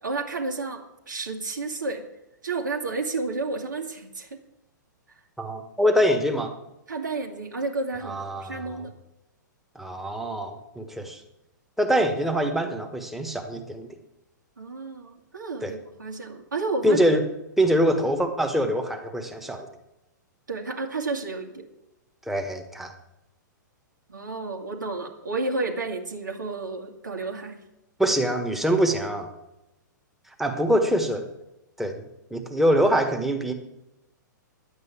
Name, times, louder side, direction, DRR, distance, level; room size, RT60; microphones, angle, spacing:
voice 1, 0.0-2.1 2.4-4.4 6.9-8.9 14.6-17.0 20.5-21.7 24.1-27.6, right 3 dB, 75° right, 1 dB, 2.0 m, -31 dB
voice 2, 5.4-6.5 8.0-8.9 9.7-11.2 11.8-13.9 15.6-15.7 16.8-17.2 17.6-19.7 22.3-22.9 28.0-29.3 30.4-31.2 31.8-33.5, equal, ahead, 5 dB, 1.4 m, -24 dB
10.5 x 8.2 x 9.0 m, 0.91 s
figure-of-eight pair, 110°, 10 cm